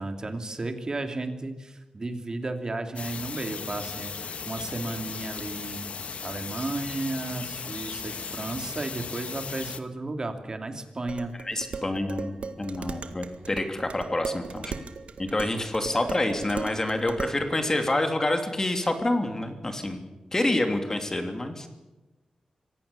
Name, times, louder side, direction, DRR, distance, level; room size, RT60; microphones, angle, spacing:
voice 1, 0.0-4.1 4.5-5.8 6.2-11.3 16.0-16.1, right 2 dB, 35° right, 6 dB, 2.8 m, -33 dB
sound 1, 3.0-9.8, left 5 dB, 75° left, 1.4 m, -37 dB
Dishes pots and pans, 11.1-17.4, right 5 dB, 75° right, 1.8 m, -37 dB
voice 2, 11.4-14.7 15.2-20.0 20.3-21.7, left 1 dB, 25° left, 6 dB, 2.9 m, -27 dB
25.0 x 17.5 x 7.0 m, 1.1 s
wide cardioid pair, 130°, 2 cm